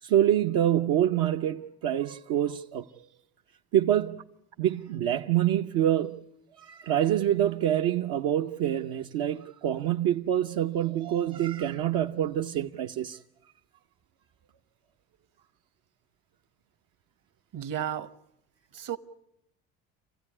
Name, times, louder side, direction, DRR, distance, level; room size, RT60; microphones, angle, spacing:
voice 1, 0.0-2.9 3.7-4.2 4.6-6.2 6.6-13.2, right 11 dB, 75° right, 0.9 m, -26 dB
voice 2, 17.5-18.1 18.7-19.0, right 10 dB, 60° right, 1.3 m, -33 dB
26.5 x 16.0 x 9.8 m
supercardioid pair, 80°, 38 cm